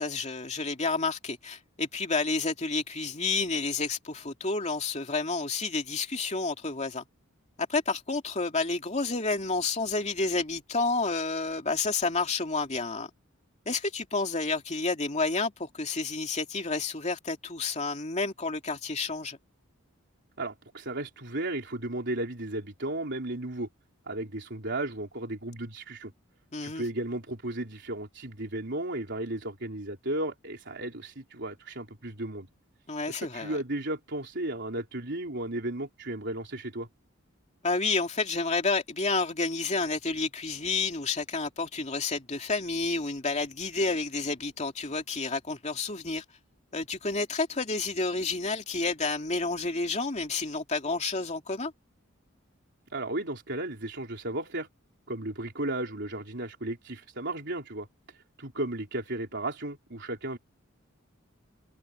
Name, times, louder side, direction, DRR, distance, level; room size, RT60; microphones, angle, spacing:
voice 1, 0.0-7.0 7.7-13.1 13.7-19.4 26.5-26.8 32.9-33.6 37.6-46.2 46.7-51.7, left 3 dB, 35° left, 2.6 m, -30 dB
voice 2, 20.4-23.7 24.1-26.1 26.6-32.5 33.1-36.9 52.9-54.7 55.1-60.4, right 1 dB, 60° right, 3.9 m, -34 dB
head